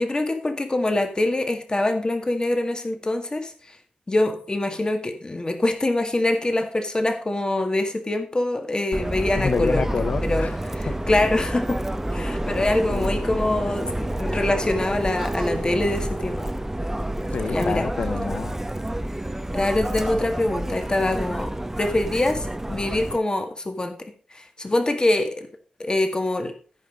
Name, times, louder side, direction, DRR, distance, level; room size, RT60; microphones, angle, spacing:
voice 1, 0.0-3.5 4.1-9.8 10.2-11.8 12.1-16.4 17.5-17.9 19.5-21.5 21.8-25.5 25.8-26.5, left 2 dB, 35° left, 1.9 m, -24 dB
Subway metro underground, 8.9-23.2, right 1 dB, 15° right, 0.9 m, -28 dB
voice 2, 9.4-10.6 10.9-11.0 12.9-13.1 17.3-18.6, left 5 dB, 70° left, 0.6 m, -27 dB
14.5 x 5.4 x 5.1 m
cardioid pair, 65°, 2 cm